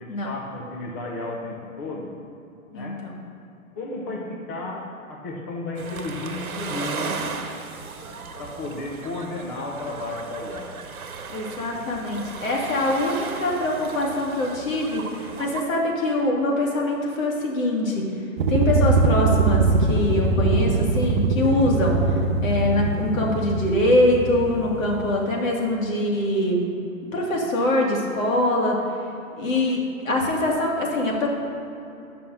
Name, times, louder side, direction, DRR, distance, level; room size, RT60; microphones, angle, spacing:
voice 1, 0.0-2.1 2.7-3.0 3.8-7.2 8.4-10.7, left 2 dB, 15° left, -1 dB, 0.4 m, -33 dB
voice 2, 2.7-3.2 11.3-18.1 18.5-22.2 22.4-26.6 27.1-28.8 29.4-31.3, left 1 dB, 65° left, -2 dB, 2.3 m, -23 dB
sound 1, 5.8-15.6, right 5 dB, 80° right, 1.1 m, -36 dB
sound 2, 18.4-25.1, right 3 dB, 35° right, 0.7 m, -22 dB
8.0 x 5.9 x 6.5 m, 2.7 s
hypercardioid pair, 135°, 42 cm